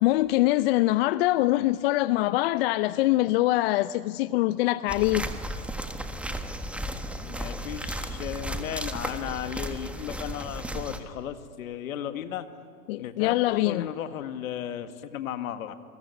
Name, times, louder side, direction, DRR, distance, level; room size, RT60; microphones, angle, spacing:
voice 1, 0.0-5.3 12.9-13.9, left 17 dB, 40° left, 15 dB, 0.6 m, -24 dB
sound 1, 4.9-11.0, right 1 dB, 5° right, 1.5 m, -34 dB
voice 2, 7.2-12.5 13.0-15.7, left 10 dB, 65° left, 9 dB, 1.9 m, -35 dB
27.5 x 21.5 x 9.9 m, 2.2 s
hypercardioid pair, 115°, 45 cm